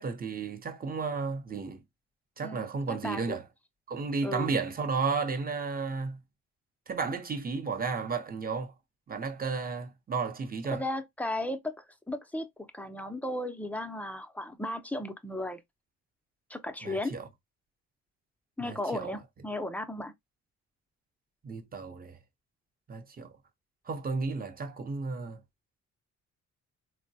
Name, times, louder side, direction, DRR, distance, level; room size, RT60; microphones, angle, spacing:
voice 1, 0.0-1.8 2.4-3.4 3.9-6.2 6.9-8.7 9.1-10.8 16.8-17.3 18.6-19.1 21.4-22.2 22.9-23.3 23.9-25.4, right 4 dB, 30° right, 0.8 m, -33 dB
voice 2, 2.4-3.4 4.2-4.5 10.7-12.5 12.7-15.6 16.5-17.1 18.6-20.1, left 1 dB, 5° left, 0.5 m, -35 dB
3.8 x 2.1 x 2.6 m
cardioid pair, 90°, 30 cm